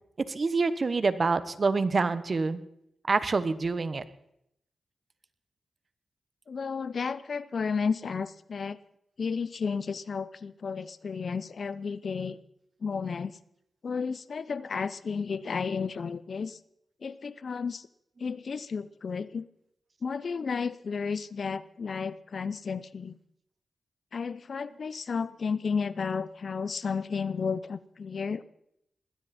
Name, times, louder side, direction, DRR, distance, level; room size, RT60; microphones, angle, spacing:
voice 1, 0.2-2.6 3.1-4.0, right 4 dB, 50° right, 14 dB, 1.2 m, -26 dB
voice 2, 6.5-8.8 9.2-12.4 12.8-13.4 13.8-16.6 17.0-17.9 18.2-19.5 20.0-23.2 24.1-28.4, left 5 dB, 65° left, 17 dB, 0.7 m, -32 dB
20.5 x 15.5 x 4.4 m, 0.77 s
cardioid pair, 65°, 0 cm